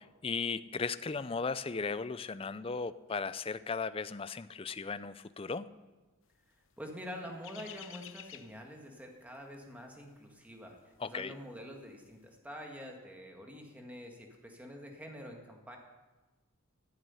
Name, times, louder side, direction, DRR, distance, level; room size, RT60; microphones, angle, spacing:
voice 1, 0.0-5.7 11.0-11.3, left 4 dB, 25° left, 14 dB, 0.4 m, -36 dB
sound 1, 6.5-11.6 11.8-12.1, left 11 dB, 60° left, 0.8 m, -52 dB
voice 2, 6.8-15.8, equal, 5° right, 1 dB, 1.8 m, -46 dB
14.0 x 7.9 x 9.8 m, 1.2 s
head